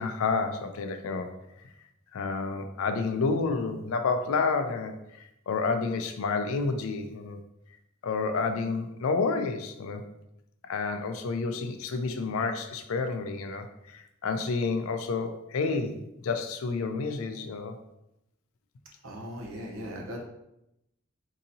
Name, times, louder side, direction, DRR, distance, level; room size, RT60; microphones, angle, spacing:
voice 1, 0.0-1.3 2.1-7.4 8.0-10.0 10.7-17.8, left 4 dB, 80° left, 7 dB, 0.4 m, -30 dB
voice 2, 19.0-20.2, equal, 75° right, -1 dB, 0.8 m, -38 dB
3.9 x 2.7 x 2.7 m, 0.84 s
head